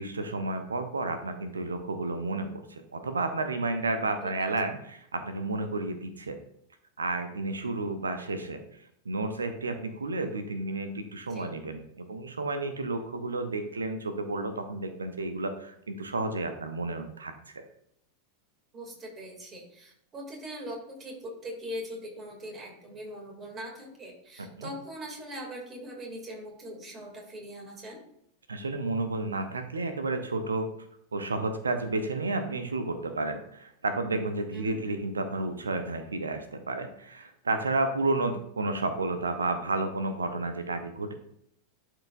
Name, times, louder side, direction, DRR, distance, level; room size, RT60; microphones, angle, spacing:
voice 1, 0.0-6.4 7.0-17.6 24.4-24.7 28.5-30.7 31.1-41.1, right 2 dB, 75° right, 8 dB, 0.7 m, -31 dB
voice 2, 18.7-28.0 34.5-34.8, equal, 25° right, 0 dB, 2.5 m, -41 dB
11.5 x 4.6 x 2.6 m, 0.72 s
figure-of-eight pair, 90°, 0 cm